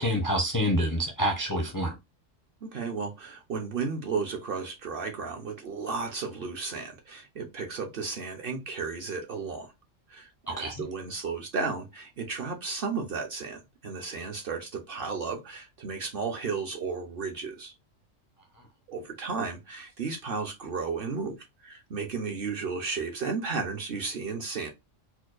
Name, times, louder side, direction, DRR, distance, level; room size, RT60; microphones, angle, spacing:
voice 1, 0.0-1.9 10.5-10.7, equal, 25° left, 0.4 m, -27 dB
voice 2, 2.6-9.7 10.1-17.7 18.9-21.4 21.6-24.7, right 4 dB, 55° right, 0.7 m, -34 dB
4.4 x 2.2 x 2.4 m
omnidirectional pair, 1.3 m